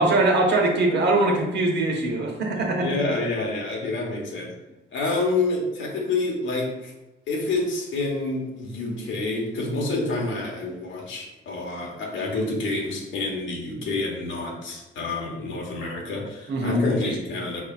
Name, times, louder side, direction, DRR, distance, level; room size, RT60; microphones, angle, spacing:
voice 1, 0.0-3.1 16.5-16.8, right 2 dB, 60° right, 1 dB, 1.1 m, -22 dB
voice 2, 2.7-4.5 4.9-6.9 7.3-17.6, left 2 dB, 70° left, 0 dB, 1.3 m, -28 dB
4.9 x 4.2 x 2.4 m, 1.0 s
cardioid pair, 90°, 20 cm